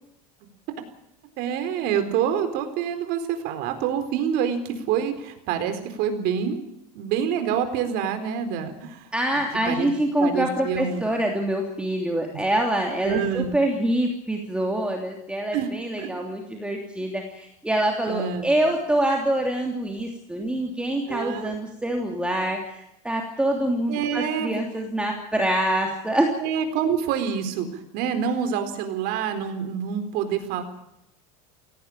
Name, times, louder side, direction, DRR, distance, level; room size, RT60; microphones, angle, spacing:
voice 1, 1.4-6.6 6.9-9.1 9.7-9.9 10.2-11.1 13.0-13.6 15.5-15.7 16.0-16.1 18.1-18.5 21.1-21.5 23.9-24.6 26.4-30.6, right 8 dB, 60° right, 8 dB, 4.3 m, -27 dB
voice 2, 9.1-26.3, right 1 dB, 5° right, 1 dB, 3.0 m, -25 dB
18.0 x 17.5 x 8.9 m, 0.82 s
supercardioid pair, 120°, 18 cm